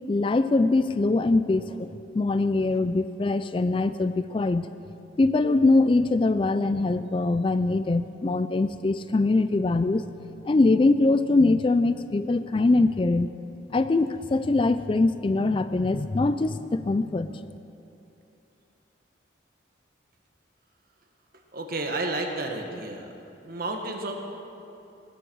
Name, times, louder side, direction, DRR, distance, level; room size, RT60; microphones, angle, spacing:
voice 1, 0.1-1.9 2.1-4.7 5.2-10.1 10.4-13.3 13.7-17.4, left 2 dB, 25° left, 12 dB, 0.3 m, -23 dB
voice 2, 21.5-23.1 23.4-24.1, right 2 dB, 50° right, 2 dB, 1.7 m, -31 dB
20.5 x 14.0 x 4.7 m, 2.8 s
head